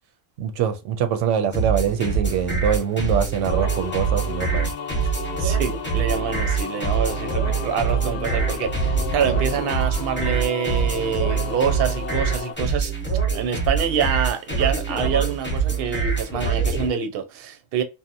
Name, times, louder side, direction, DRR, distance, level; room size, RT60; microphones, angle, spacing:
voice 1, 0.4-4.7, right 7 dB, 85° right, 0.9 m, -24 dB
sound 1, 1.5-16.9, right 5 dB, 10° left, 0.8 m, -24 dB
sound 2, 3.5-12.5, left 7 dB, 75° left, 0.9 m, -33 dB
voice 2, 5.4-12.9 13.3-17.8, right 7 dB, 60° right, 0.7 m, -26 dB
2.7 x 2.1 x 2.5 m
omnidirectional pair, 1.2 m